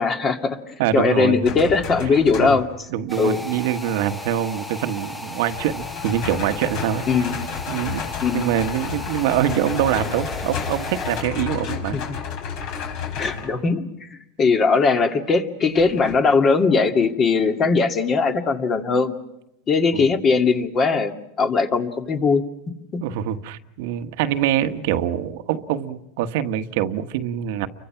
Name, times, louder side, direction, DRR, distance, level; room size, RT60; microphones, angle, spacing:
voice 1, 0.0-2.6 3.2-3.4 7.1-7.4 8.2-8.4 11.9-12.0 13.2-19.2 19.7-21.1 21.4-22.4, left 4 dB, 25° left, 6 dB, 2.3 m, -20 dB
voice 2, 0.8-1.4 2.4-2.6 2.9-7.2 7.7-8.0 8.3-12.0 19.9-20.1 23.0-27.7, right 10 dB, 65° right, 8 dB, 1.4 m, -24 dB
sound 1, 1.4-2.8 5.5-13.6 15.8-16.2, left 7 dB, 55° left, 5.0 m, -32 dB
sound 2, 3.1-11.2, left 2 dB, 10° left, 1.3 m, -35 dB
30.0 x 24.0 x 5.9 m, 0.83 s
supercardioid pair, 140°, 0 cm